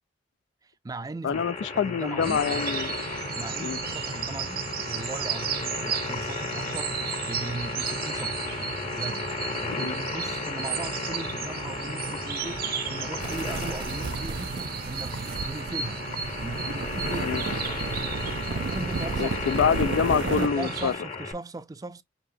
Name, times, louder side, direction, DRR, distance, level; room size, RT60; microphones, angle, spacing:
voice 1, 0.6-2.4 3.3-7.0 7.3-8.5 8.9-9.3 9.6-16.0 16.4-17.4 18.5-19.8 20.2-22.0, right 2 dB, 20° right, 0.4 m, -38 dB
voice 2, 1.2-3.0 3.6-3.8 9.7-9.9 17.2-17.4 19.2-20.9, left 7 dB, 80° left, 0.3 m, -26 dB
sound 1, 1.3-21.3, left 4 dB, 40° left, 0.8 m, -35 dB
sound 2, 2.2-20.9, right 6 dB, 55° right, 0.7 m, -34 dB
sound 3, 13.2-20.5, right 4 dB, 90° right, 0.5 m, -33 dB
5.6 x 2.9 x 2.6 m
head